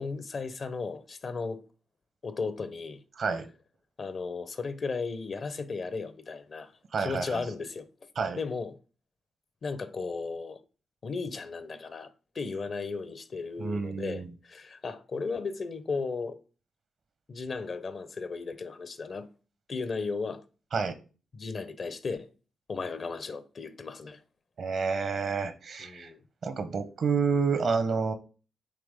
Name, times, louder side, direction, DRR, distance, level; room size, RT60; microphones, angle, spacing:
voice 1, 0.0-1.6 2.2-3.0 4.0-6.7 7.0-7.9 8.3-8.8 9.6-10.6 11.0-12.1 12.3-16.4 17.3-19.3 19.7-20.4 21.3-22.3 22.7-24.2 25.8-26.2, left 4 dB, 50° left, 0.8 m, -35 dB
voice 2, 3.2-3.5 6.9-7.5 8.1-8.4 13.6-14.3 20.7-21.0 24.6-26.1 26.4-28.1, right 5 dB, 60° right, 1.0 m, -29 dB
8.4 x 3.2 x 3.6 m
hypercardioid pair, 45°, 0 cm